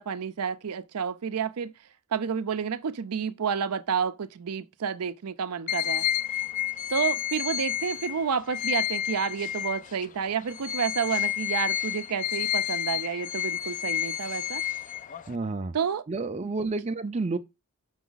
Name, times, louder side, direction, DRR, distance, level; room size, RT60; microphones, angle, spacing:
voice 1, 0.0-1.7 2.1-6.0 6.9-14.6 15.7-16.0, right 6 dB, 85° right, 0.5 m, -30 dB
sound 1, 5.7-10.1 10.5-15.4, left 11 dB, 35° left, 0.4 m, -30 dB
voice 2, 15.3-15.7 16.1-17.4, right 3 dB, 30° right, 0.5 m, -30 dB
6.1 x 5.5 x 3.9 m
head